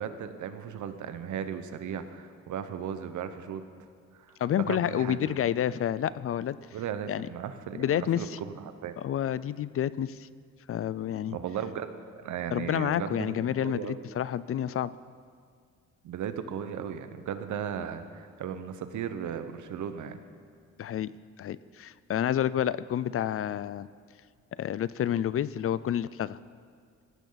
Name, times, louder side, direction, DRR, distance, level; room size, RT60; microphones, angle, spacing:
voice 1, 0.0-3.6 4.1-5.3 6.7-9.0 11.2-14.0 16.0-20.2, right 8 dB, 75° right, 9 dB, 1.2 m, -36 dB
voice 2, 4.4-6.6 7.1-7.3 7.7-8.4 9.0-10.3 10.7-11.4 12.5-14.9 20.8-21.1 21.4-23.9 24.6-26.4, left 10 dB, 50° left, 18 dB, 0.5 m, -29 dB
18.5 x 16.5 x 4.1 m, 2.1 s
cardioid pair, 90°, 30 cm